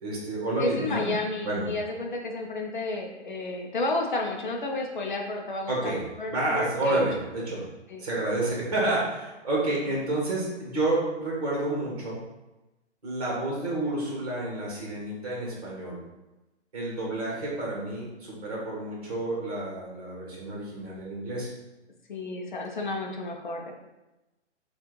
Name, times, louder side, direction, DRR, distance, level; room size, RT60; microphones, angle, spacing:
voice 1, 0.0-1.1 1.4-1.7 5.7-6.0 6.3-7.6 8.0-12.2 13.0-16.0 16.7-21.5, right 2 dB, 30° right, -4 dB, 1.3 m, -29 dB
voice 2, 0.6-7.0 7.9-8.0 22.1-23.7, left 2 dB, 40° left, 1 dB, 0.6 m, -32 dB
5.7 x 2.5 x 3.0 m, 1.0 s
hypercardioid pair, 180°, 36 cm